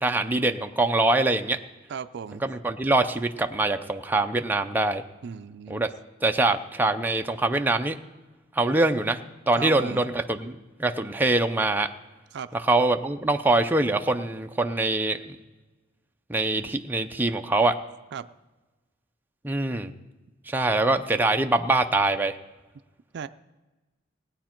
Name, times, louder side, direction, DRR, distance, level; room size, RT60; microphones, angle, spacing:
voice 1, 0.0-1.6 2.4-5.0 5.7-5.9 6.2-8.0 8.5-9.2 9.5-11.9 12.5-15.4 16.3-17.7 19.4-19.9 20.5-22.4, right 2 dB, 10° right, 5 dB, 0.5 m, -24 dB
voice 2, 1.9-2.4 5.2-5.8 9.5-10.0 12.3-12.5 18.1-18.3 23.1-23.3, right 6 dB, 60° right, 12 dB, 0.4 m, -36 dB
18.5 x 9.2 x 4.4 m, 1.2 s
head